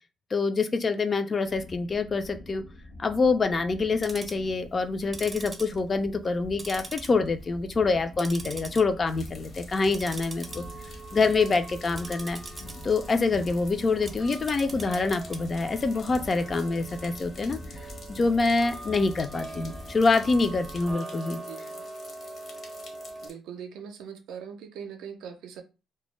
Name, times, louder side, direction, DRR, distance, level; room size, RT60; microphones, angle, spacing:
voice 1, 0.3-2.6 3.0-10.6 11.1-12.4 12.8-17.6 18.1-21.4, left 3 dB, 35° left, 0.3 m, -26 dB
sound 1, 1.4-20.9, left 1 dB, 80° left, 0.6 m, -45 dB
Tick-tock, 3.8-4.5 5.0-6.3 6.6-7.5 7.8-8.8 9.2-9.4 9.9-23.3, right 3 dB, 25° right, 0.5 m, -43 dB
sound 2, 9.1-23.3, left 3 dB, 50° left, 0.8 m, -50 dB
voice 2, 21.3-21.8 23.2-25.6, right 7 dB, 85° right, 0.4 m, -41 dB
2.2 x 2.0 x 3.0 m
cardioid pair, 90°, 0 cm